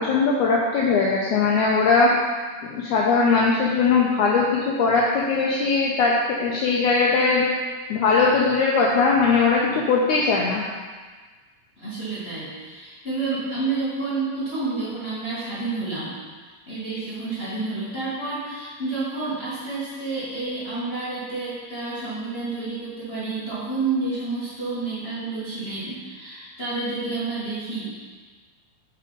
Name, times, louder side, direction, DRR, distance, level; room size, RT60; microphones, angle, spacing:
voice 1, 0.0-2.1 2.6-7.5 7.9-10.6, left 4 dB, 75° left, -3 dB, 1.8 m, -20 dB
voice 2, 11.8-16.1 16.4-28.1, right 3 dB, 25° left, -11 dB, 1.3 m, -29 dB
8.4 x 3.9 x 5.0 m, 1.4 s
omnidirectional pair, 4.1 m